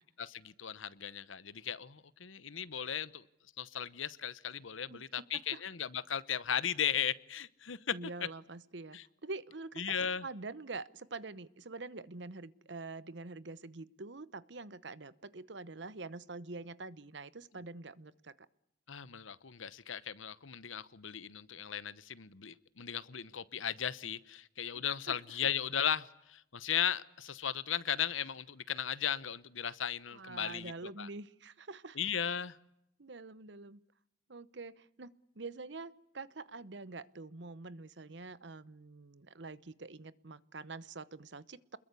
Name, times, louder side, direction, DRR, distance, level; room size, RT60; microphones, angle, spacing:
voice 1, 0.2-3.2 3.6-7.9 8.9-9.0 9.8-10.2 18.9-30.7 31.0-31.1 32.0-32.6, left 8 dB, 85° left, 17 dB, 1.0 m, -36 dB
voice 2, 7.9-18.5 24.7-25.2 30.1-32.0 33.0-33.8 34.3-35.1 35.3-41.8, right 3 dB, 60° right, 18 dB, 1.0 m, -46 dB
28.0 x 21.5 x 8.3 m, 0.78 s
head